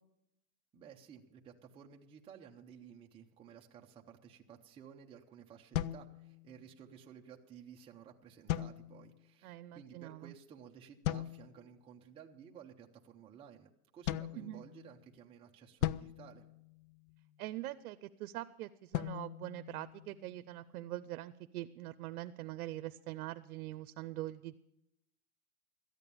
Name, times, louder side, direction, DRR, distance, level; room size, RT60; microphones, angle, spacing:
voice 1, 0.7-16.4, right 8 dB, 15° right, 0 dB, 0.6 m, -55 dB
sound 1, 5.7-6.8 8.5-9.3 11.0-11.7 14.1-15.1 15.8-17.3 18.9-20.4, left 13 dB, 70° left, 0.6 m, -39 dB
voice 2, 9.4-10.3 14.4-14.6 17.4-24.6, right 15 dB, 80° right, 12 dB, 0.7 m, -43 dB
13.5 x 9.1 x 6.9 m, 0.83 s
supercardioid pair, 155°, 43 cm